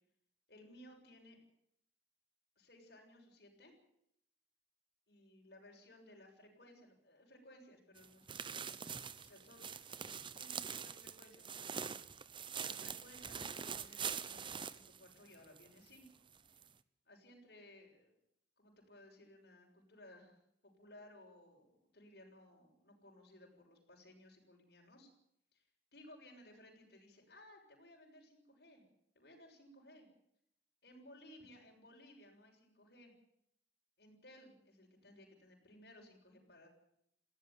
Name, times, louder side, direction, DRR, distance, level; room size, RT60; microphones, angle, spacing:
voice 1, 0.5-1.4 2.6-3.7 5.1-9.6 10.3-12.1 12.6-16.2 17.1-18.2 18.6-25.1 25.5-25.7 25.9-28.8 29.2-30.1 30.8-33.1 34.0-36.7, left 1 dB, 60° left, 0 dB, 7.0 m, -60 dB
sound 1, 8.0-15.7 16.0-16.1 16.6-16.7, right 7 dB, 30° right, 0.9 m, -44 dB
20.0 x 16.5 x 9.3 m, 0.74 s
head